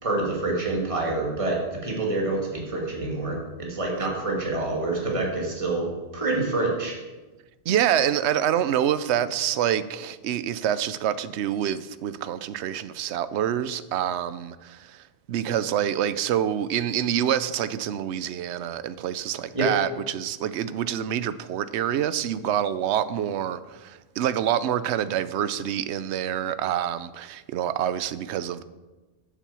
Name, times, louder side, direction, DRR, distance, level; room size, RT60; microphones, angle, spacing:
voice 1, 0.0-6.9 19.5-19.7, right 2 dB, 30° right, 2.0 m, -27 dB
voice 2, 7.7-28.6, right 10 dB, 75° right, 0.9 m, -26 dB
8.8 x 7.5 x 6.8 m
omnidirectional pair, 1.2 m